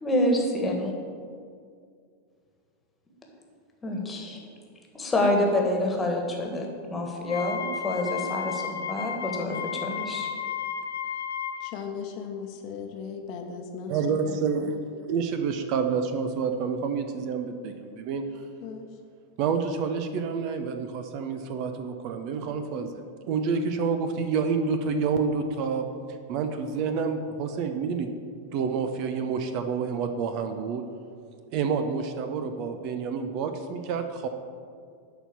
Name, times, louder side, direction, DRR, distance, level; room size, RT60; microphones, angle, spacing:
voice 1, 0.0-0.9 3.8-4.4 4.9-10.3, left 1 dB, 15° left, 1 dB, 1.7 m, -27 dB
Wind instrument woodwind instrument, 7.2-11.7, left 8 dB, 70° left, 0.7 m, -33 dB
voice 2, 11.6-14.8 18.6-18.8, left 6 dB, 45° left, 3 dB, 1.0 m, -38 dB
voice 3, 13.9-14.6 15.1-18.2 19.4-25.9 26.3-28.1 28.5-30.8 31.5-34.3, right 5 dB, 45° right, 7 dB, 0.7 m, -28 dB
11.0 x 4.3 x 7.0 m, 2.2 s
figure-of-eight pair, 90°, 0 cm